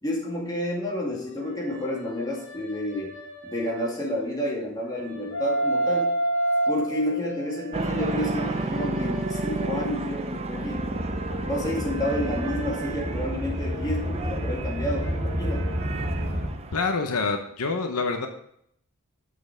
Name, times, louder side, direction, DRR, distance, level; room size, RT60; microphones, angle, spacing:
voice 1, 0.0-3.1 3.4-6.2 6.7-10.8 11.5-15.8, left 1 dB, 20° left, -3 dB, 2.3 m, -30 dB
sound 1, 0.9-4.5 4.9-10.1 10.5-16.1, right 1 dB, 55° left, 3.2 m, -33 dB
sound 2, 7.7-16.8, right 3 dB, 30° right, 0.6 m, -32 dB
sound 3, 10.6-16.5, equal, 50° right, 1.9 m, -30 dB
voice 2, 16.7-18.3, left 4 dB, 80° left, 5 dB, 0.9 m, -26 dB
7.7 x 6.4 x 5.1 m, 0.70 s
head